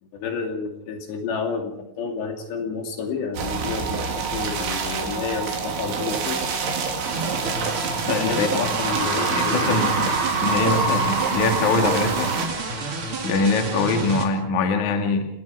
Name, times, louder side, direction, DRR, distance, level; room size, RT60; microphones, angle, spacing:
voice 1, 0.0-6.4 8.2-10.1, left 5 dB, 70° left, 4 dB, 4.6 m, -30 dB
sound 1, 3.4-12.5, right 5 dB, 80° right, 5.5 m, -27 dB
sound 2, 7.1-14.3, right 3 dB, 40° right, 2.4 m, -30 dB
sound 3, 7.7-7.8 8.6-13.8, right 1 dB, 65° right, 7.8 m, -29 dB
voice 2, 8.1-8.7 9.3-12.3 13.2-15.3, left 4 dB, 50° left, 4 dB, 2.9 m, -23 dB
29.5 x 18.5 x 4.8 m, 0.74 s
omnidirectional pair, 5.4 m